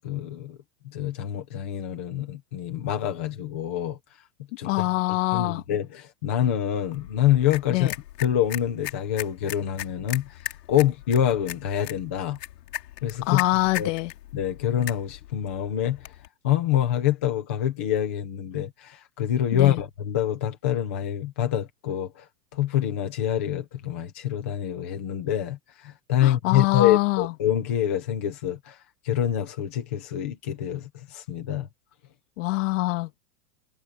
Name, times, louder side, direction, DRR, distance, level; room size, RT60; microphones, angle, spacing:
voice 1, 0.0-0.6 0.8-4.0 4.6-4.9 5.3-7.9 8.2-12.4 13.0-13.4 13.8-13.9 14.3-16.0 16.4-22.3 22.5-28.8 29.0-31.7, left 11 dB, 10° left, 0.3 m, -26 dB
voice 2, 4.6-5.6 7.7-7.9 13.2-14.1 19.5-19.8 26.2-27.3 32.4-33.2, left 21 dB, 50° left, 2.3 m, -24 dB
sound 1, 6.8-16.3, left 14 dB, 80° left, 3.5 m, -39 dB
supercardioid pair, 160°, 48 cm